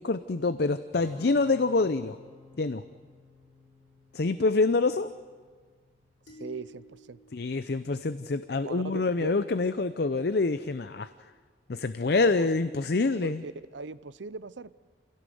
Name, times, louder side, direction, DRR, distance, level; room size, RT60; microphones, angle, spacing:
voice 1, 0.0-2.2 2.6-2.8 4.1-5.1 7.3-11.1 11.7-13.4, left 3 dB, 55° left, 12 dB, 0.6 m, -26 dB
Strum, 0.9-7.2, left 2 dB, 35° right, 6.6 m, -54 dB
sound 1, 6.3-8.7, equal, 75° left, 7.0 m, -52 dB
voice 2, 6.4-7.2 8.6-9.3 12.0-12.5 13.2-14.7, right 4 dB, 80° right, 18 dB, 0.6 m, -40 dB
27.0 x 16.5 x 7.8 m, 1.5 s
head